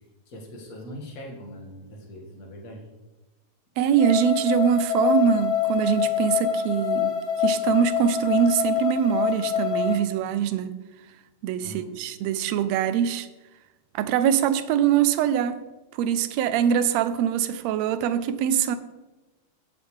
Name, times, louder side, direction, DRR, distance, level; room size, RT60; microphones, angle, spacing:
voice 1, 0.3-2.9 11.6-11.9, equal, 35° left, 1.9 m, -41 dB
voice 2, 3.8-7.1 7.4-10.8 11.4-13.3 14.0-15.6 15.9-18.8, right 9 dB, 75° right, 1.7 m, -23 dB
sound 1, 4.0-10.0, left 9 dB, 60° left, 0.9 m, -25 dB
16.0 x 7.2 x 3.2 m
omnidirectional pair, 3.3 m